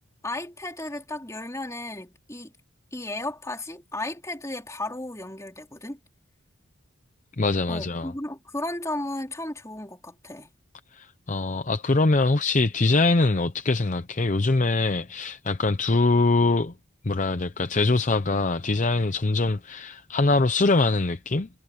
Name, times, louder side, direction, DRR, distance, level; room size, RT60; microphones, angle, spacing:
voice 1, 0.2-2.5 2.9-6.0 7.7-10.5, left 2 dB, 15° left, 3.7 m, -34 dB
voice 2, 7.4-8.1 10.9-16.7 17.0-21.5, left 3 dB, 35° left, 0.6 m, -23 dB
head